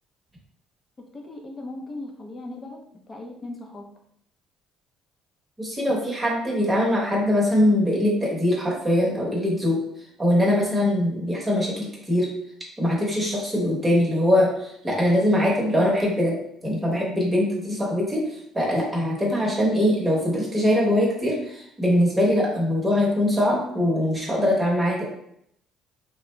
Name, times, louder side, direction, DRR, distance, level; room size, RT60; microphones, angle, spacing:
voice 1, 1.1-2.8 3.1-3.9, left 2 dB, 30° left, 2 dB, 0.6 m, -37 dB
voice 2, 5.6-12.3 12.8-25.0, left 1 dB, 15° right, -4 dB, 1.0 m, -22 dB
2.5 x 2.0 x 3.1 m, 0.72 s
supercardioid pair, 90°, 0 cm